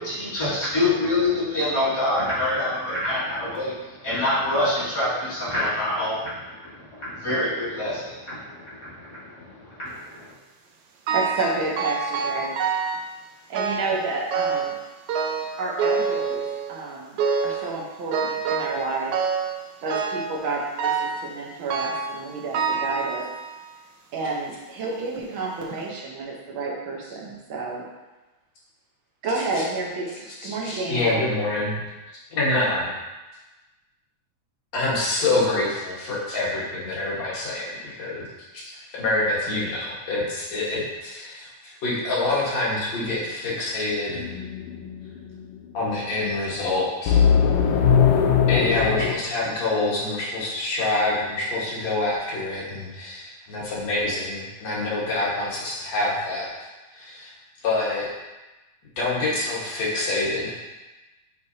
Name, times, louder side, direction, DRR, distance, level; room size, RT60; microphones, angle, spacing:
voice 1, 0.0-10.3, left 2 dB, 35° left, -12 dB, 2.4 m, -26 dB
voice 2, 11.1-12.6 13.5-14.8 15.6-16.4 16.7-19.1 19.8-23.2 24.1-27.8 29.2-30.1 30.4-31.2, right 3 dB, 65° right, -2 dB, 1.2 m, -30 dB
sound 1, 11.1-11.5 11.8-13.1 13.5-14.0 14.3-14.8 15.1-16.8 17.2-17.7 18.1-18.8 19.1-19.6 19.9-20.3 20.8-21.2 21.7-22.2 22.5-23.6 24.3-24.4 25.2-25.3 25.7-25.8, right 5 dB, 85° right, 1.3 m, -26 dB
voice 3, 30.4-31.7 32.3-32.9 34.7-38.3 38.5-44.3 45.7-47.2 48.5-57.3 57.6-58.1 59.0-60.6, left 2 dB, 60° left, -7 dB, 2.7 m, -26 dB
sound 2, 44.2-45.0 47.1-49.1, left 7 dB, 80° left, 1.5 m, -19 dB
7.9 x 4.9 x 2.8 m, 1.1 s
omnidirectional pair, 3.5 m